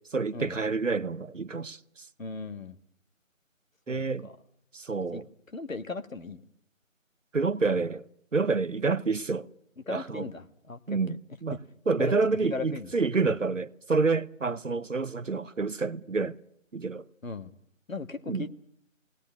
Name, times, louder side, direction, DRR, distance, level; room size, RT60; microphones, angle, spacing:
voice 1, 0.1-2.1 3.9-4.3 4.7-5.2 7.3-8.0 8.3-9.5 9.9-10.3 10.9-11.6 11.9-16.4 16.7-17.0 18.3-18.4, right 4 dB, 70° right, 0.8 m, -28 dB
voice 2, 2.2-2.8 3.9-4.3 5.1-5.2 5.5-6.4 9.9-11.2 11.5-11.6 12.0-12.2 12.4-12.9 13.2-13.3 17.2-17.5 17.9-18.5, left 3 dB, 75° left, 1.4 m, -37 dB
19.5 x 18.0 x 9.9 m
figure-of-eight pair, 180°, 40 cm